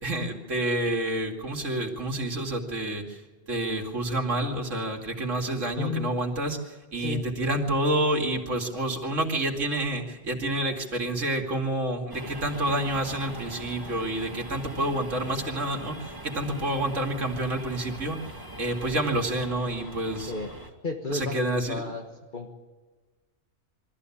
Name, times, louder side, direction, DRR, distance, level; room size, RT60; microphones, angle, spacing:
voice 1, 0.0-3.2 3.5-18.2 18.6-20.3 21.1-21.8, right 1 dB, 90° right, 1 dB, 2.9 m, -28 dB
voice 2, 5.8-6.1 7.0-7.2 20.3-20.5 20.8-22.0 22.3-22.5, left 4 dB, 40° left, 2 dB, 1.5 m, -32 dB
sound 1, 12.1-20.7, right 1 dB, 20° right, 2.0 m, -41 dB
23.5 x 14.0 x 8.6 m, 1.4 s
omnidirectional pair, 1.3 m